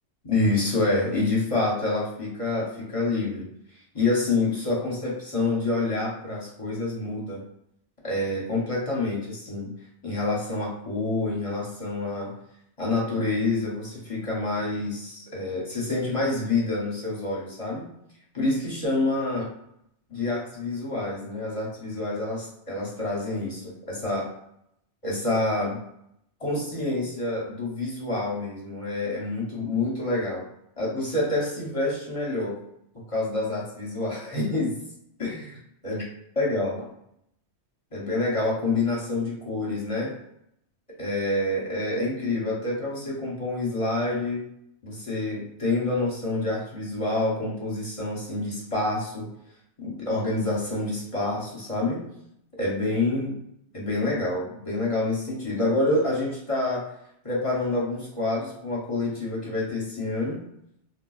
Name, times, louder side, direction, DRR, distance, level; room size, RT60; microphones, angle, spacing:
voice 1, 0.2-3.5 3.9-7.4 8.0-9.7 10.0-12.3 12.8-17.9 18.3-19.4 20.1-24.3 25.0-25.8 26.4-30.4 30.8-32.6 33.1-34.8 35.2-35.6 35.8-36.0 36.4-36.9 37.9-40.2 41.0-44.4 44.8-49.3 49.8-52.1 52.6-53.4 53.7-56.9 57.2-60.4, left 2 dB, 35° left, -5 dB, 0.7 m, -27 dB
3.8 x 2.2 x 2.3 m, 0.75 s
omnidirectional pair, 1.2 m